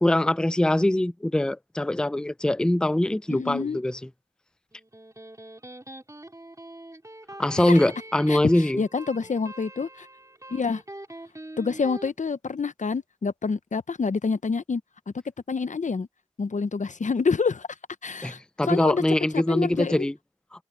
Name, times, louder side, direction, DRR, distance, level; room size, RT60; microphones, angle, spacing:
voice 1, 0.0-4.0 7.4-8.8 18.2-20.1, left 1 dB, 5° left, 0.4 m, -23 dB
voice 2, 3.3-3.8 7.6-7.8 8.3-10.1 10.5-10.8 11.6-14.8 15.5-16.1 16.4-17.7 18.0-19.0 19.3-20.1, left 5 dB, 80° left, 0.7 m, -27 dB
Electric guitar, 4.7-12.1, right 1 dB, 25° right, 3.8 m, -43 dB
wide cardioid pair, 60°, 12 cm